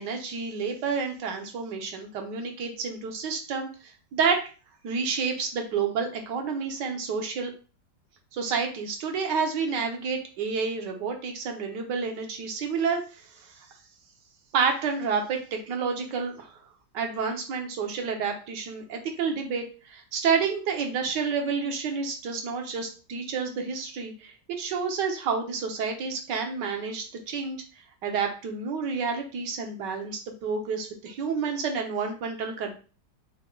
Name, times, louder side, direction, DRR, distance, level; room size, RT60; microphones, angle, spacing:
voice 1, 0.0-4.5 4.8-7.5 8.3-13.5 14.5-16.6 16.9-27.6 28.0-32.7, right 5 dB, 70° right, 3 dB, 1.5 m, -29 dB
5.3 x 3.8 x 2.3 m, 0.36 s
omnidirectional pair, 2.0 m